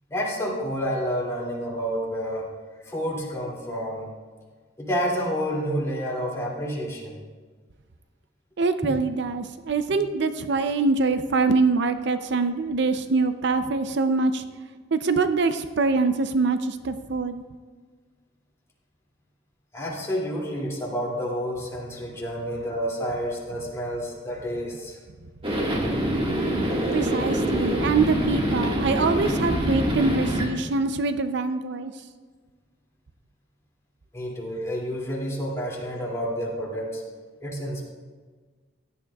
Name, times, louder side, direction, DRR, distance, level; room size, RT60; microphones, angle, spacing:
voice 1, 0.1-2.5 2.9-4.1 4.8-7.2 9.9-10.0 19.7-25.0 34.1-37.0 37.4-37.8, equal, 15° left, -3 dB, 2.5 m, -29 dB
voice 2, 8.6-14.4 14.9-17.4 26.9-31.9, right 3 dB, 65° right, 9 dB, 0.5 m, -24 dB
sound 1, 25.4-30.5, right 1 dB, 30° right, 1.7 m, -25 dB
16.0 x 11.5 x 2.3 m, 1.5 s
head